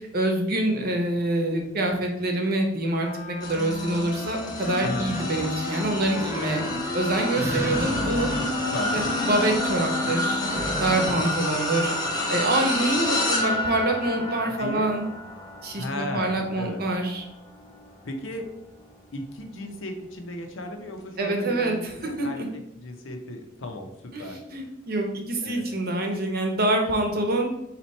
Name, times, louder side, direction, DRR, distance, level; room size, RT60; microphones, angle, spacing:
voice 1, 0.1-6.6 6.9-8.3 8.9-11.9 12.3-15.1 15.6-17.2 21.2-22.5 24.1-27.5, right 1 dB, 50° right, 2 dB, 0.9 m, -26 dB
Wind instrument woodwind instrument, 2.9-11.6, left 4 dB, 40° left, 0.4 m, -36 dB
sound 1, 3.4-18.9 19.4-19.7 20.9-21.0, left 1 dB, 20° left, 0.8 m, -30 dB
sound 2, 4.7-11.2, equal, 15° right, 0.5 m, -32 dB
voice 2, 4.8-5.2 8.7-9.0 14.6-15.0 15.7-16.8 18.0-18.5 19.1-22.4 22.7-23.9 24.2-24.4 25.4-25.7, left 1 dB, 70° left, 4 dB, 0.7 m, -35 dB
4.2 x 2.9 x 4.2 m, 0.85 s
head